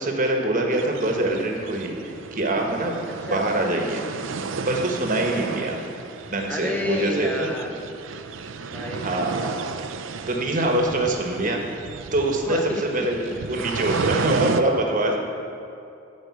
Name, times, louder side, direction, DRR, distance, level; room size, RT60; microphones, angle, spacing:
voice 1, 0.0-4.0 4.7-5.8 6.3-7.5 8.9-9.6 10.3-11.6 12.1-12.6 12.9-15.2, right 1 dB, 40° right, 2 dB, 1.3 m, -24 dB
sound 1, 0.7-14.6, right 4 dB, 75° right, 0.5 m, -33 dB
voice 2, 3.2-3.5 5.1-5.5 6.5-7.9 8.7-9.2 12.5-13.1 13.6-13.7, left 1 dB, 10° left, 1 dB, 0.5 m, -31 dB
12.0 x 5.2 x 8.2 m, 2.7 s
head